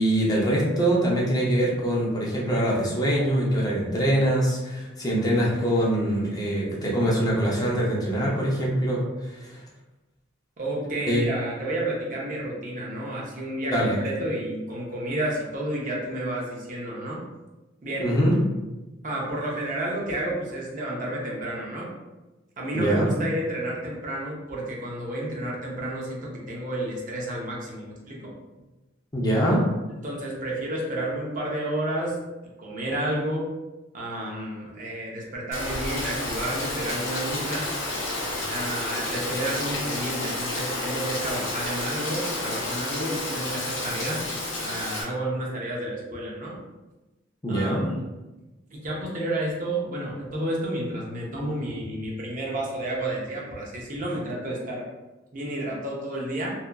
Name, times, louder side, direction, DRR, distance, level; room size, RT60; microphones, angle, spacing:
voice 1, 0.0-9.6 11.1-11.3 13.7-14.0 18.0-18.4 22.7-23.1 29.1-29.7 47.4-47.9, right 1 dB, 20° left, -4 dB, 0.5 m, -23 dB
voice 2, 10.6-17.2 17.8-18.1 19.0-21.9 22.6-28.3 30.0-32.2 32.6-33.5 33.9-37.7 38.5-44.2 44.6-46.6 47.5-48.0 48.7-54.8 55.3-56.5, right 1 dB, 40° right, -3 dB, 0.6 m, -31 dB
Rain, 35.5-45.0, left 2 dB, 85° left, 0.8 m, -30 dB
2.8 x 2.3 x 2.2 m, 1.1 s
head